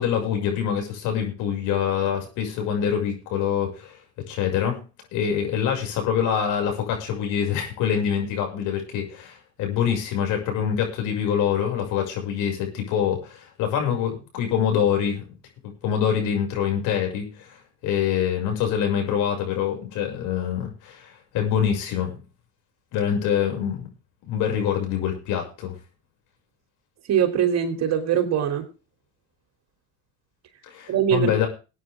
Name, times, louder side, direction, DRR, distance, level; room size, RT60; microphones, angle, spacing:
voice 1, 0.0-4.0 4.3-4.8 5.1-15.2 15.6-22.2 22.9-23.9 24.2-25.7 30.6-31.5, left 8 dB, 60° left, 3 dB, 6.6 m, -25 dB
voice 2, 27.1-28.7 30.9-31.3, right 9 dB, 45° right, 7 dB, 3.3 m, -22 dB
21.0 x 9.2 x 3.7 m, 0.32 s
hypercardioid pair, 85°, 35 cm